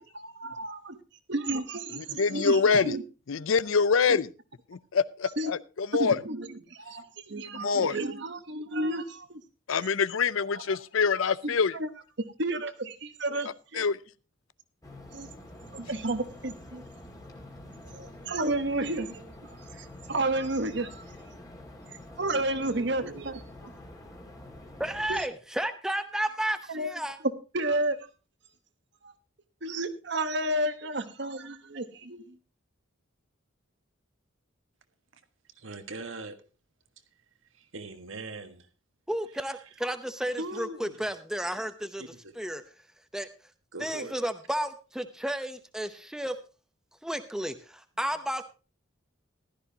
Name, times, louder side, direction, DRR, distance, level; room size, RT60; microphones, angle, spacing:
voice 1, 0.1-0.8 1.3-3.0 4.1-4.2 5.4-5.5 6.0-9.4 10.5-10.6 11.4-11.9 12.4-13.9 15.1-15.3 15.7-16.8 17.9-19.3 19.7-21.0 22.2-23.7 25.1-25.3 26.7-26.9 27.5-28.0 29.0-29.1 29.6-32.4, right 2 dB, 55° right, 1.2 m, -32 dB
voice 2, 2.0-3.0 3.3-4.3 4.7-6.2 7.6-8.0 9.7-11.7 13.7-14.0, left 5 dB, 75° left, 0.5 m, -25 dB
sound 1, 14.8-25.2, left 1 dB, 15° left, 2.1 m, -47 dB
voice 3, 24.8-27.2 39.1-42.0 42.4-42.6 43.1-43.3 43.8-46.3 47.0-47.5 48.0-48.4, right 1 dB, 5° right, 0.7 m, -32 dB
voice 4, 35.6-36.4 37.6-38.7 39.3-39.8 40.4-41.0 42.0-42.3 43.7-44.2 48.0-48.1, right 2 dB, 75° right, 1.5 m, -41 dB
15.0 x 12.5 x 2.8 m
head